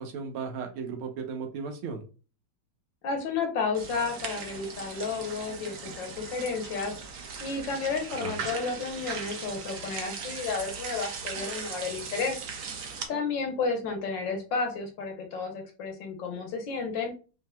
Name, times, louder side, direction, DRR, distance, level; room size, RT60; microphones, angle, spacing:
voice 1, 0.0-2.0 8.2-8.5, right 5 dB, 90° right, 4 dB, 1.7 m, -36 dB
voice 2, 3.0-6.9 7.4-12.4 13.1-17.1, left 4 dB, 65° left, 4 dB, 1.5 m, -32 dB
sound 1, 3.7-13.1, right 5 dB, 70° right, 0.7 m, -38 dB
5.6 x 2.8 x 2.2 m, 0.35 s
omnidirectional pair, 2.3 m